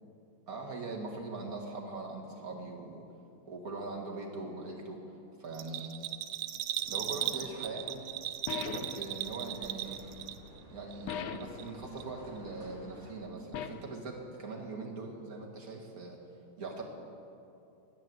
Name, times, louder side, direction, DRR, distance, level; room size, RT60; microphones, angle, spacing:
voice 1, 0.5-3.0 3.4-5.0 5.4-6.3 6.9-8.0 8.5-10.0 10.7-16.2 16.6-16.8, right 3 dB, 50° right, -2 dB, 2.2 m, -41 dB
Bell, 5.5-10.6 10.9-11.7 12.0-12.1, right 12 dB, 75° right, 1.2 m, -37 dB
sound 1, 6.7-13.1, equal, 20° right, 1.9 m, -53 dB
sound 2, 8.5-9.1 11.1-11.6 13.5-14.0, left 8 dB, 70° left, 0.8 m, -38 dB
11.0 x 9.6 x 7.7 m, 2.7 s
omnidirectional pair, 2.1 m